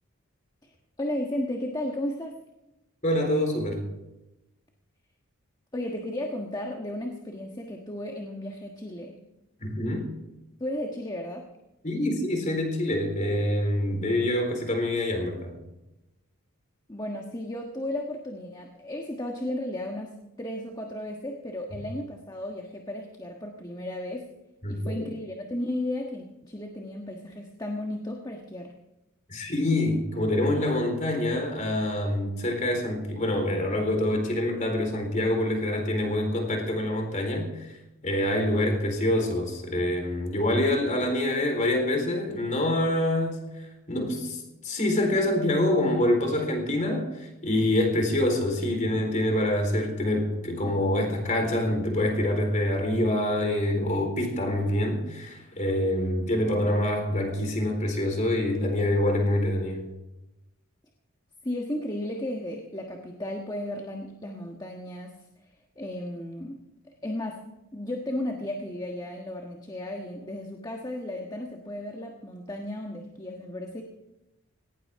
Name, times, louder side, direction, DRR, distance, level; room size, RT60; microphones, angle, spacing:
voice 1, 1.0-2.3 5.7-9.2 10.6-11.4 16.9-24.3 24.7-28.7 61.4-65.1 65.8-66.6 66.8-67.4 67.7-73.8, left 1 dB, 20° left, 1 dB, 1.4 m, -34 dB
voice 2, 3.0-3.8 9.6-10.1 11.8-15.5 24.6-25.1 29.3-37.7 38.0-43.4 43.9-59.9, left 1 dB, 35° left, 3 dB, 4.2 m, -26 dB
18.5 x 18.0 x 3.7 m, 0.94 s
head